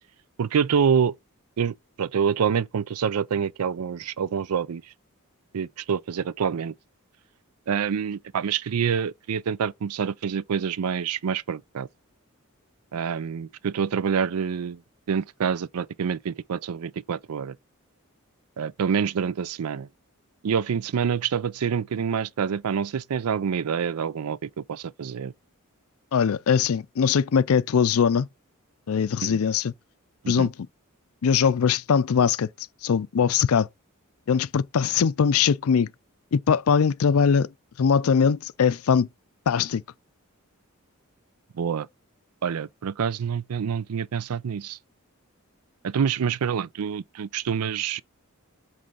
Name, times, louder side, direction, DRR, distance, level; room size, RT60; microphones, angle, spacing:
voice 1, 0.4-1.1 1.6-4.8 5.5-6.7 7.7-11.9 12.9-14.8 15.1-17.6 18.6-19.9 20.4-25.3 29.2-29.4 30.2-30.5 41.5-41.9 42.4-44.8 45.8-48.0, right 7 dB, 90° right, 0.4 m, -27 dB
voice 2, 26.1-28.3 28.9-29.7 30.3-30.5 31.2-32.5 32.8-33.7 34.3-35.9 36.3-37.5 37.8-39.1 39.5-39.8, left 6 dB, 70° left, 0.4 m, -21 dB
7.6 x 3.3 x 5.4 m
head